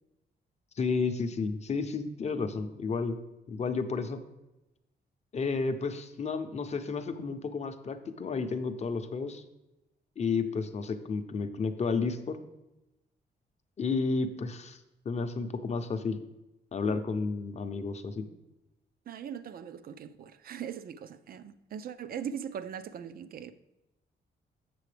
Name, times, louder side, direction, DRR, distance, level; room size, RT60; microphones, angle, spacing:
voice 1, 0.8-3.2 3.5-4.2 5.3-9.4 10.2-12.4 13.8-14.8 15.1-16.2 16.7-18.2, left 4 dB, 40° left, 0.6 m, -31 dB
voice 2, 19.1-23.5, right 8 dB, 55° right, 0.4 m, -40 dB
7.7 x 6.8 x 3.3 m
cardioid pair, 130°, 18 cm